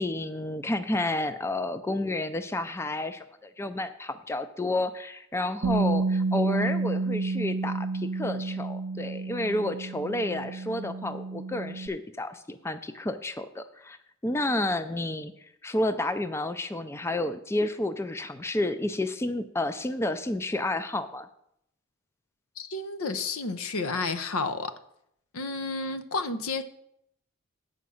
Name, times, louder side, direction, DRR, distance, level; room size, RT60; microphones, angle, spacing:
voice 1, 0.0-14.0 14.2-21.3, left 2 dB, 10° left, 11 dB, 0.4 m, -30 dB
Bass guitar, 5.6-11.9, right 3 dB, 75° right, 0.5 m, -30 dB
voice 2, 22.6-24.7 25.3-26.6, left 3 dB, 85° left, 11 dB, 0.7 m, -31 dB
8.6 x 5.0 x 7.0 m, 0.75 s
head